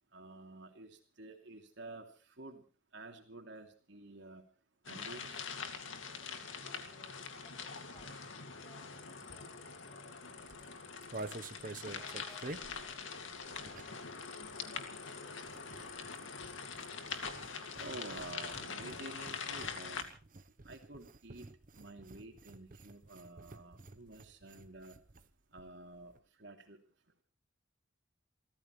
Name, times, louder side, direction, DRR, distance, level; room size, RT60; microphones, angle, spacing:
voice 1, 0.1-2.6 2.9-4.4 4.8-5.4 17.8-20.1 20.6-21.5 21.8-25.0 25.5-26.8, right 2 dB, 65° right, 3 dB, 2.9 m, -50 dB
sound 1, 4.8-20.0, left 5 dB, 75° left, 2.3 m, -44 dB
voice 2, 6.2-11.4 11.9-15.4, equal, 15° left, 2 dB, 7.9 m, -63 dB
sound 2, 10.4-14.1 14.4-25.3 25.6-25.7 25.9-26.2, right 2 dB, 40° right, 0.9 m, -50 dB
29.0 x 14.5 x 3.2 m, 0.37 s
head